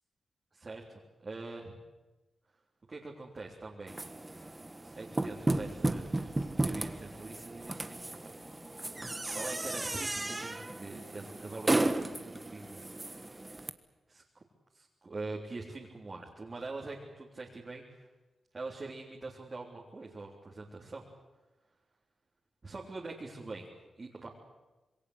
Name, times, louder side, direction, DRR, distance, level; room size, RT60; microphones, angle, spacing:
voice 1, 0.5-1.8 2.9-4.0 4.8-8.4 9.3-12.8 14.1-14.4 14.7-18.1 18.5-21.0 22.6-24.3, right 3 dB, 35° right, -2 dB, 3.5 m, -44 dB
sound 1, 3.9-13.7, right 2 dB, 20° right, 1.4 m, -34 dB
26.5 x 21.5 x 8.1 m, 1.1 s
cardioid pair, 80°, 0 cm